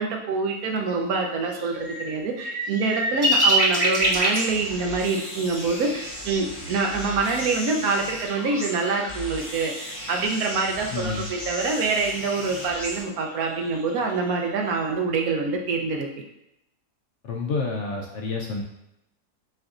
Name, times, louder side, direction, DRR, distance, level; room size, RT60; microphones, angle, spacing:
voice 1, 0.0-16.1, right 4 dB, 75° right, 2 dB, 1.1 m, -26 dB
sound 1, 0.9-1.0 1.5-4.6 5.0-5.1 5.6-5.9 6.2-6.3 6.6-7.7 8.2-8.3 9.4-12.7 13.2-14.5, right 1 dB, 25° right, 0.9 m, -27 dB
sound 2, 4.0-13.0, left 1 dB, 35° left, 1.4 m, -36 dB
voice 2, 10.9-11.3 17.2-18.6, left 4 dB, 65° left, 0 dB, 0.8 m, -29 dB
7.7 x 2.6 x 2.4 m, 0.84 s
omnidirectional pair, 1.6 m